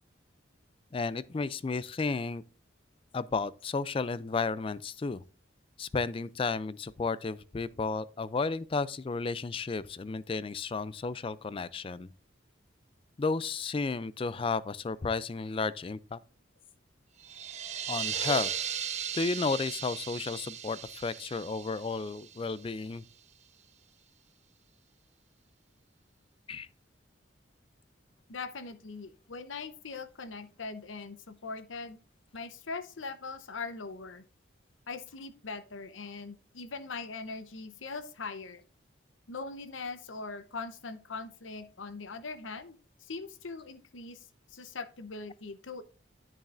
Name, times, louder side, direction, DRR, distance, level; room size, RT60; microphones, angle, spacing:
voice 1, 0.9-2.4 3.1-5.2 5.8-12.1 13.2-16.2 17.9-18.5 19.1-23.0 26.5-26.7, left 4 dB, 30° left, 0.3 m, -33 dB
sound 1, 17.2-22.8, right 8 dB, 35° right, 0.7 m, -37 dB
voice 2, 28.3-32.0 32.3-34.2 34.9-38.6 39.3-44.3 44.5-45.8, left 4 dB, 80° left, 0.8 m, -41 dB
10.5 x 7.2 x 2.5 m
head